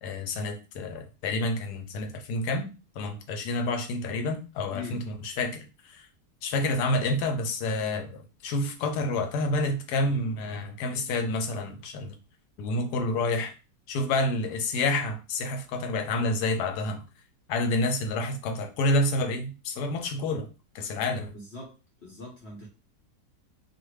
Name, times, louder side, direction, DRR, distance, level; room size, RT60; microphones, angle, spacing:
voice 1, 0.0-2.7 3.0-6.1 6.4-12.1 12.6-13.5 13.9-17.0 17.5-20.5 20.7-21.3, left 2 dB, 90° left, 1.2 m, -29 dB
voice 2, 4.7-5.0 21.3-21.8 22.0-22.7, left 3 dB, 50° left, 1.1 m, -41 dB
2.6 x 2.5 x 3.1 m
omnidirectional pair, 1.7 m